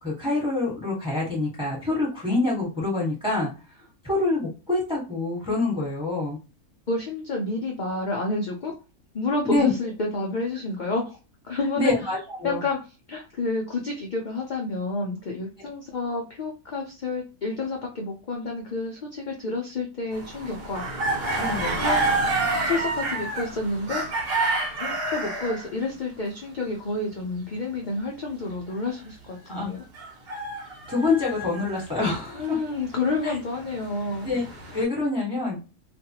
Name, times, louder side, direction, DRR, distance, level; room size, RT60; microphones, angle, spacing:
voice 1, 0.0-3.5 4.0-6.4 9.4-9.7 11.8-12.6 15.6-15.7 21.4-21.8 29.5-29.7 30.9-32.6 33.2-33.3 34.2-34.4 34.7-35.6, left 3 dB, 5° right, -4 dB, 1.1 m, -26 dB
voice 2, 6.9-8.7 9.1-11.2 11.4-11.9 12.4-12.8 13.1-20.8 21.7-22.0 22.7-24.0 24.8-29.8 32.3-34.3, left 3 dB, 75° left, 0 dB, 0.4 m, -29 dB
sound 1, 20.1-25.7 29.9-31.9 32.7-34.8, right 2 dB, 50° right, 0.9 m, -28 dB
2.5 x 2.2 x 2.8 m, 0.31 s
omnidirectional pair, 1.5 m